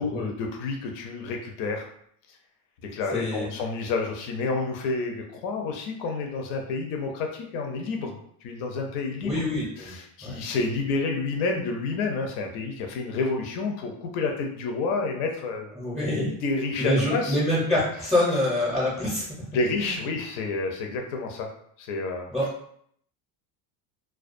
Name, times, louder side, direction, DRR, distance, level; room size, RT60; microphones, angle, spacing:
voice 1, 0.0-1.9 2.8-9.5 9.8-15.7 16.4-17.4 19.5-21.5 21.8-22.3, left 3 dB, 80° left, 2 dB, 0.6 m, -29 dB
voice 2, 3.1-3.5 9.2-9.9 10.2-10.4 15.8-16.3 16.8-19.3 22.3-22.5, left 1 dB, 5° left, -7 dB, 0.5 m, -25 dB
2.3 x 2.3 x 2.4 m, 0.66 s
supercardioid pair, 120°, 46 cm